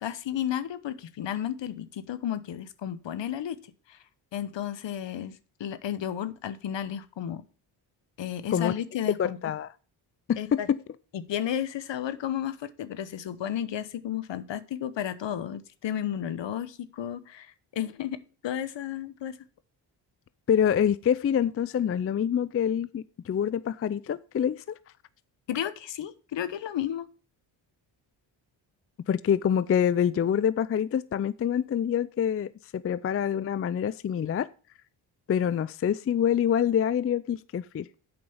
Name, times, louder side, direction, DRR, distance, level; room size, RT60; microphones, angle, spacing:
voice 1, 0.0-3.6 3.9-4.0 4.3-7.4 8.2-9.4 10.4-10.7 11.1-19.4 25.5-27.1, left 10 dB, 60° left, 1.0 m, -33 dB
voice 2, 9.2-9.7 10.3-10.8 20.5-24.8 29.1-34.5 35.3-37.9, left 8 dB, 30° left, 0.4 m, -26 dB
7.9 x 5.2 x 7.0 m
supercardioid pair, 55°, 48 cm